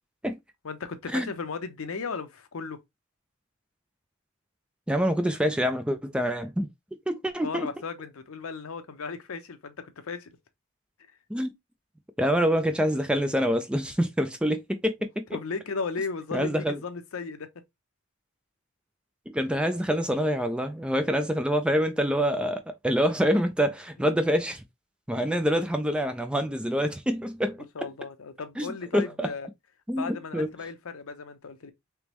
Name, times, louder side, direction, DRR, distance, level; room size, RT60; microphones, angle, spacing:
voice 1, 0.6-2.8 7.4-10.4 15.3-17.5 27.7-29.5 29.9-31.7, left 4 dB, 75° left, 0.7 m, -35 dB
voice 2, 4.9-6.7 7.1-7.7 11.3-11.5 12.2-15.2 16.3-16.8 19.3-24.6 25.1-27.9 28.6-29.3 29.9-30.5, equal, 5° right, 0.3 m, -26 dB
3.5 x 3.0 x 3.0 m
head